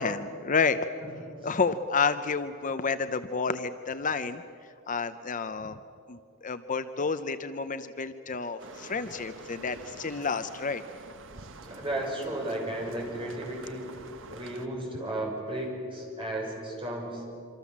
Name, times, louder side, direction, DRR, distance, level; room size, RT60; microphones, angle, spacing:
voice 1, 0.0-0.8 1.4-4.4 4.9-5.8 6.1-10.8, left 5 dB, 40° left, 11 dB, 0.7 m, -30 dB
voice 2, 1.0-1.6 11.6-17.3, right 1 dB, 25° right, -1 dB, 6.4 m, -35 dB
sound 1, 8.6-14.7, right 3 dB, 65° right, 1.5 m, -47 dB
27.0 x 25.5 x 7.4 m, 2.5 s
head